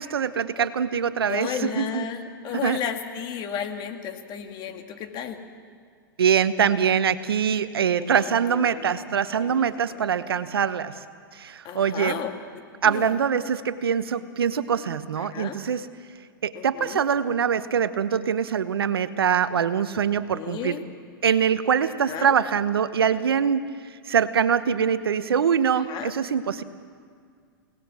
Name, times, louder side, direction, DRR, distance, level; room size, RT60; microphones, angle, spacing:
voice 1, 0.0-2.0 2.6-2.8 6.2-11.0 11.3-12.2 12.8-15.9 16.4-20.8 21.2-23.6 24.1-26.6, right 7 dB, 85° right, 13 dB, 1.1 m, -23 dB
voice 2, 1.3-5.4 7.9-9.0 9.4-10.0 11.6-12.3 12.8-13.2 15.2-15.6 16.5-17.0 20.3-20.8 22.1-22.4 25.7-26.1, left 8 dB, 35° left, 5 dB, 2.3 m, -34 dB
29.5 x 18.5 x 6.3 m, 2.1 s
hypercardioid pair, 115°, 12 cm